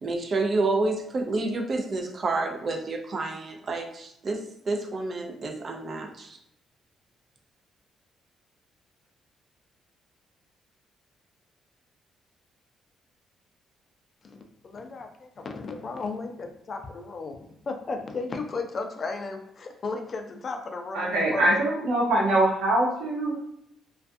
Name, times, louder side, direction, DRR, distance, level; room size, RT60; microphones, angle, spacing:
voice 1, 0.0-6.4, right 3 dB, 45° right, 2 dB, 0.5 m, -29 dB
voice 2, 14.2-21.6, left 3 dB, 45° left, 4 dB, 0.4 m, -35 dB
voice 3, 20.9-23.5, right 1 dB, 90° right, -3 dB, 0.8 m, -23 dB
2.4 x 2.2 x 2.5 m, 0.76 s
cardioid pair, 90°, 0 cm